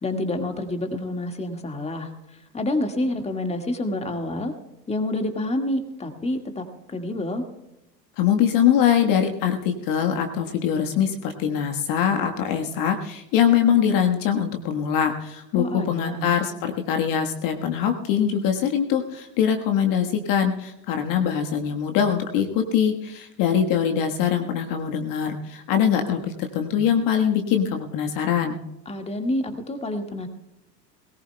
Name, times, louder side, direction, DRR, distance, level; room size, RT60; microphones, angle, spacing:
voice 1, 0.0-4.5 4.9-7.4 15.5-16.3 28.9-30.3, left 1 dB, 15° left, 5 dB, 1.8 m, -28 dB
voice 2, 8.2-28.6, left 8 dB, 40° left, 4 dB, 1.5 m, -23 dB
21.0 x 18.5 x 2.2 m, 0.91 s
figure-of-eight pair, 80°, 50 cm